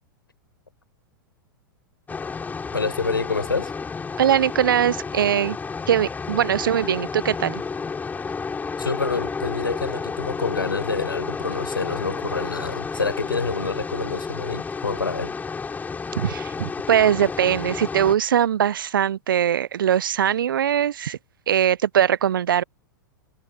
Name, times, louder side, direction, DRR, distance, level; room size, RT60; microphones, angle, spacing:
sound 1, 2.1-18.1, left 5 dB, 15° left, 5.8 m, -31 dB
voice 1, 2.7-3.7 8.8-15.3, left 4 dB, 90° left, 5.5 m, -27 dB
voice 2, 4.2-5.6 5.9-7.6 16.2-21.2 21.5-22.6, right 9 dB, 75° right, 0.5 m, -21 dB
hypercardioid pair, 100°, 11 cm